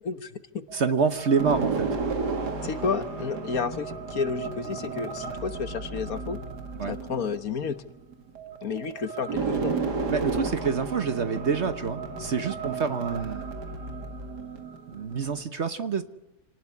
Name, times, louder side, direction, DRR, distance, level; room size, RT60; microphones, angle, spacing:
voice 1, 0.0-0.7 2.6-6.4 6.9-7.8 8.6-9.8, left 5 dB, 60° left, 11 dB, 1.6 m, -31 dB
voice 2, 0.7-1.9 6.8-7.0 10.1-13.4 14.9-16.0, right 5 dB, 45° right, 10 dB, 1.3 m, -27 dB
sound 1, 0.7-15.4, right 4 dB, 85° right, 2.6 m, -33 dB
27.0 x 19.0 x 9.7 m, 0.96 s
omnidirectional pair, 1.7 m